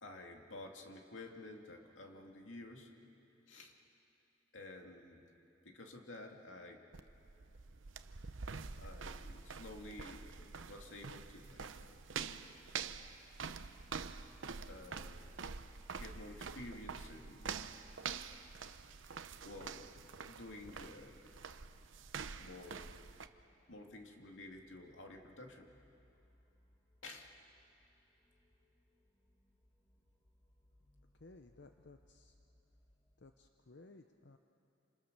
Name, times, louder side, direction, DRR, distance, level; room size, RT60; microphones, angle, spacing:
voice 1, 0.0-3.0 3.5-3.7 4.5-5.3 5.6-6.9 8.8-12.1 14.7-15.3 15.9-17.6 19.4-19.9 20.3-21.4 22.3-22.9 23.7-25.7 27.0-27.3, left 2 dB, 85° left, 2 dB, 2.4 m, -52 dB
sound 1, 6.9-23.3, right 5 dB, 85° right, 0.8 m, -46 dB
sound 2, 19.1-33.4, left 1 dB, 10° left, 1.9 m, -72 dB
voice 2, 31.1-32.4 33.2-34.4, left 3 dB, 60° left, 6 dB, 0.7 m, -58 dB
27.5 x 27.0 x 6.7 m, 2.9 s
head